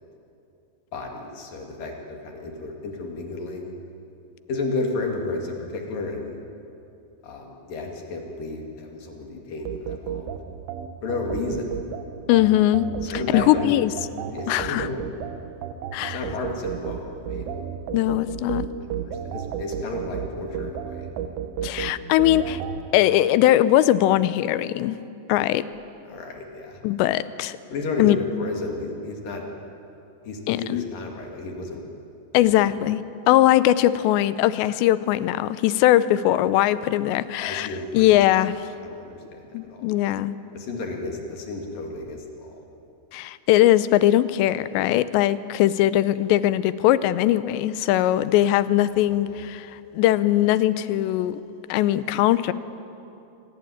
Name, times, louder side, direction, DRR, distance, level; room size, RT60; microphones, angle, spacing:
voice 1, 0.9-3.7 4.5-6.4 7.2-10.4 11.0-11.7 13.0-13.7 14.3-15.0 16.1-17.6 18.8-21.1 26.1-26.8 27.7-29.4 30.2-31.8 32.4-32.7 37.4-38.3 38.8-39.4 39.7-39.8 40.5-42.6 49.1-49.5, left 3 dB, 55° left, 2 dB, 3.9 m, -32 dB
sound 1, 9.7-22.8, right 8 dB, 80° right, 3.3 m, -33 dB
voice 2, 12.3-12.9 13.3-13.9 14.5-14.9 15.9-16.2 17.9-18.7 21.6-22.6 22.9-25.0 25.3-25.6 26.8-27.6 28.0-28.2 30.5-30.8 32.3-33.0 33.3-38.5 39.5-40.4 43.1-49.7 49.9-51.4 51.7-52.5, left 14 dB, 85° left, 15 dB, 2.9 m, -20 dB
26.0 x 18.5 x 9.9 m, 2.7 s
omnidirectional pair, 5.1 m